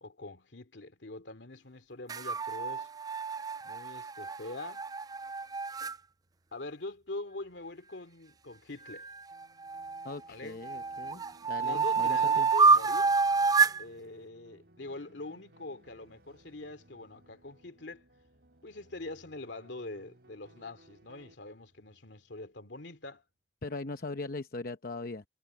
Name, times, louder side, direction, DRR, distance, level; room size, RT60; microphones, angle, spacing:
voice 1, 0.0-2.9 3.6-4.9 6.5-9.1 10.3-10.6 11.6-13.1 13.8-18.0 18.6-23.2, left 2 dB, 80° left, 2.4 m, -43 dB
sound 1, 2.1-5.9 8.9-10.1 10.6-13.8, right 4 dB, 20° right, 0.3 m, -28 dB
Motorcycle, 5.0-23.2, equal, 60° right, 7.2 m, -68 dB
sound 2, 9.3-21.3, right 1 dB, 80° right, 2.9 m, -63 dB
voice 2, 10.0-11.2 11.5-12.5 23.6-25.2, left 3 dB, 55° left, 0.9 m, -40 dB
head